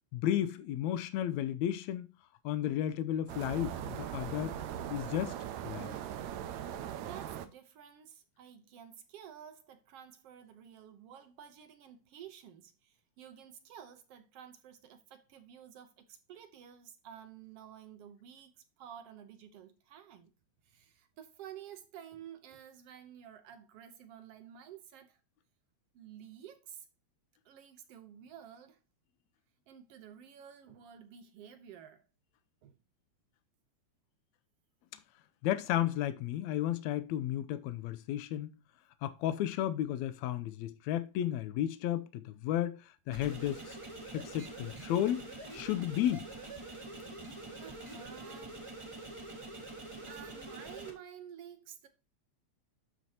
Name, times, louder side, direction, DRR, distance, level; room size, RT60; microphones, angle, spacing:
voice 1, 0.1-2.1 2.4-4.6 4.9-5.4 5.6-5.9 35.4-38.5 39.0-43.8 44.1-46.3, left 12 dB, 80° left, 1.9 m, -33 dB
sound 1, 3.3-7.5, right 10 dB, 80° right, 2.0 m, -40 dB
voice 2, 6.6-18.5 18.8-20.3 20.6-25.2 25.9-26.9 27.4-28.8 29.7-32.0 32.6-32.8 47.6-48.6 50.1-51.9, right 9 dB, 65° right, 1.7 m, -52 dB
sound 2, 43.1-50.9, right 2 dB, 15° right, 1.0 m, -45 dB
12.5 x 4.6 x 2.8 m
omnidirectional pair, 3.3 m